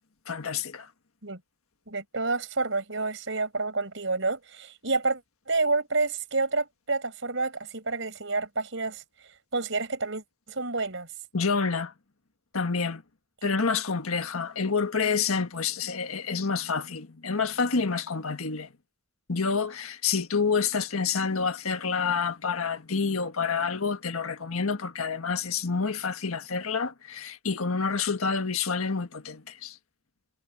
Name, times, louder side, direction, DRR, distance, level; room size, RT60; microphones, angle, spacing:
voice 1, 0.2-0.9 11.3-11.9 12.5-13.0 13.4-18.7 19.3-29.8, left 5 dB, 85° left, 1.6 m, -28 dB
voice 2, 1.9-5.2 5.5-9.0 9.5-11.1, right 3 dB, 60° right, 5.1 m, -29 dB
head